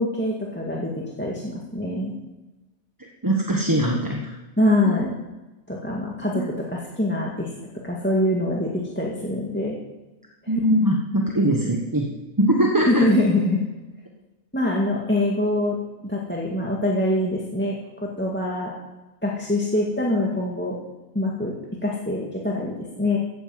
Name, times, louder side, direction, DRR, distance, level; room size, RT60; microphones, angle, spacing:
voice 1, 0.0-2.1 4.6-5.2 5.7-7.5 7.8-9.8 12.9-13.6 14.5-18.7 19.2-20.8 21.1-21.5 21.8-23.2, left 1 dB, 10° left, -4 dB, 1.9 m, -24 dB
voice 2, 3.2-4.3 6.3-6.4 10.5-13.1, right 1 dB, 15° right, 0 dB, 1.3 m, -22 dB
15.5 x 9.2 x 7.8 m, 1.1 s
omnidirectional pair, 1.4 m